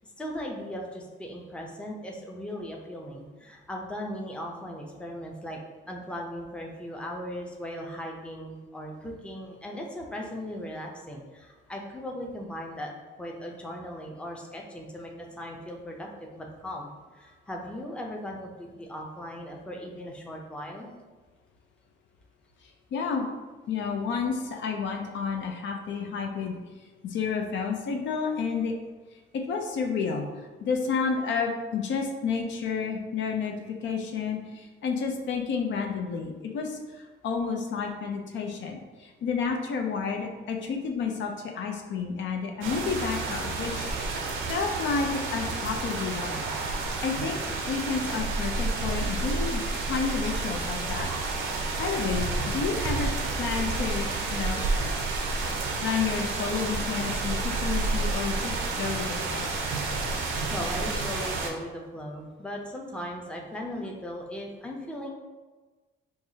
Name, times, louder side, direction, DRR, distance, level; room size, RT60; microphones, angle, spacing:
voice 1, 0.2-5.6 5.9-12.9 13.2-20.9 60.5-65.1, equal, 5° left, -1 dB, 0.6 m, -38 dB
voice 2, 22.6-23.3 23.7-26.6 27.0-28.7 29.1-30.3 30.6-43.9 44.5-46.4 47.0-47.4 47.7-49.6 49.9-51.1 51.8-53.1 53.4-54.6 55.8-59.5, left 5 dB, 65° left, 2 dB, 0.5 m, -30 dB
sound 1, 42.6-61.5, right 3 dB, 90° right, 0.6 m, -30 dB
4.5 x 2.3 x 2.7 m, 1.3 s
cardioid pair, 90°, 20 cm